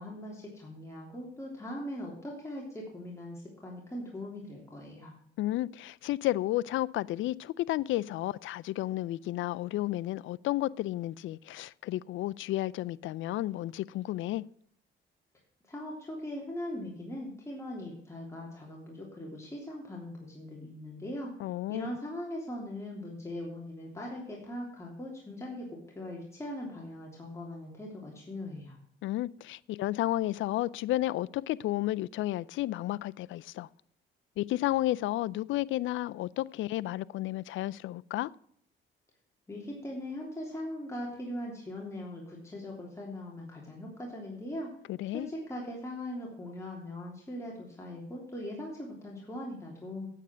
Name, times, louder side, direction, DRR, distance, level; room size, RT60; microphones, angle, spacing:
voice 1, 0.0-5.1 15.7-21.3 21.7-28.8 39.5-44.7 45.1-50.1, left 1 dB, 15° left, -3 dB, 3.3 m, -40 dB
voice 2, 5.4-14.4 21.4-21.9 29.0-33.7 34.4-38.3 44.9-45.3, left 15 dB, 80° left, 19 dB, 0.4 m, -32 dB
9.2 x 8.5 x 6.2 m, 0.67 s
cardioid pair, 90°, 20 cm